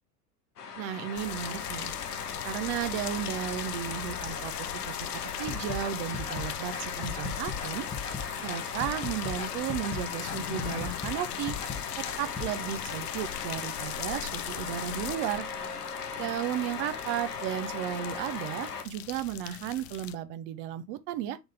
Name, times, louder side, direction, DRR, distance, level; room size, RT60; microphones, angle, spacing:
sound 1, 0.6-18.8, left 5 dB, 75° left, 1.0 m, -38 dB
voice 1, 0.8-1.9 2.4-4.9 5.4-7.9 8.4-11.6 12.0-15.5 16.2-21.4, right 11 dB, 25° right, 0.5 m, -34 dB
sound 2, 1.1-20.1, left 14 dB, 45° left, 0.4 m, -40 dB
sound 3, 5.4-12.5, left 5 dB, 15° left, 0.9 m, -37 dB
3.9 x 3.9 x 3.3 m
figure-of-eight pair, 80°, 47 cm